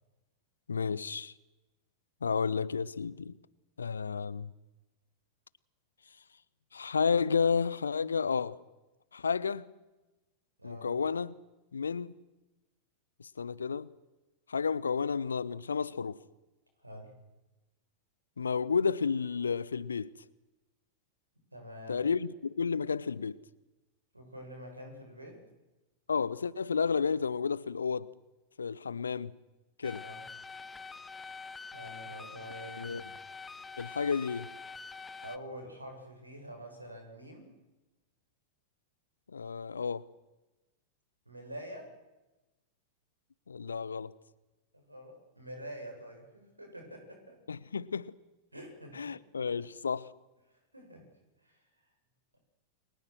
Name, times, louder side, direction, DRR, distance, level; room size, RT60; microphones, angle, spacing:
voice 1, 0.7-1.3 2.2-3.3 3.8-4.5 6.7-8.6 9.1-9.7 10.6-11.3 11.7-12.2 13.2-13.9 14.5-16.2 18.4-20.1 21.9-23.4 26.1-28.1 28.6-29.3 29.8-30.0 32.8-33.0 33.8-34.5 39.3-40.1 43.5-44.1 47.5-48.1 48.9-50.1, left 5 dB, 75° left, 0.8 m, -31 dB
voice 2, 10.6-10.9 16.8-17.2 21.5-22.1 24.1-25.4 29.9-30.2 31.7-33.1 35.2-37.5 41.3-41.9 44.7-47.4 48.5-49.1 50.5-51.1 51.4-51.7, equal, 85° right, 7.1 m, -46 dB
sound 1, 29.8-35.4, left 4 dB, 15° left, 1.2 m, -45 dB
29.5 x 23.5 x 6.3 m
figure-of-eight pair, 90°, 0 cm